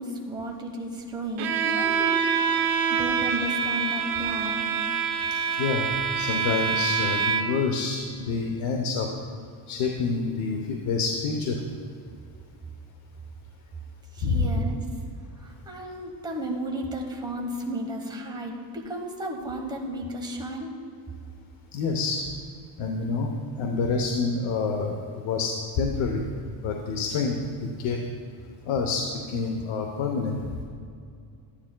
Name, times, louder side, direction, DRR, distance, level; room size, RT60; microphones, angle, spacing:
voice 1, 0.0-2.2 2.6-4.7 14.1-14.8 15.4-20.7, right 1 dB, 10° right, -1 dB, 1.0 m, -33 dB
Bowed string instrument, 1.4-7.7, right 6 dB, 75° right, 0.8 m, -26 dB
voice 2, 5.3-5.9 6.1-9.1 9.7-11.6 14.2-14.5 21.7-22.2 22.8-26.2 26.6-27.4 27.8-28.0 28.6-30.4, left 4 dB, 90° left, 1 dB, 0.9 m, -27 dB
13.5 x 10.0 x 2.2 m, 2.4 s
cardioid pair, 130°, 47 cm